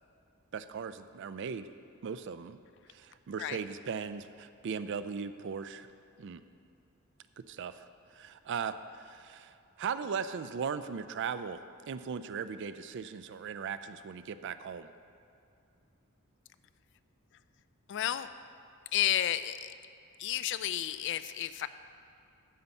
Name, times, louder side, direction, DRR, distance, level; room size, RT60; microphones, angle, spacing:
voice 1, 0.5-1.7 2.0-2.6 2.9-5.9 6.2-6.4 7.4-7.8 8.1-14.9, right 6 dB, 55° right, 12 dB, 0.4 m, -38 dB
voice 2, 17.9-18.3 18.9-19.7 20.2-21.7, left 12 dB, 55° left, 13 dB, 0.3 m, -31 dB
9.4 x 5.4 x 7.1 m, 2.5 s
head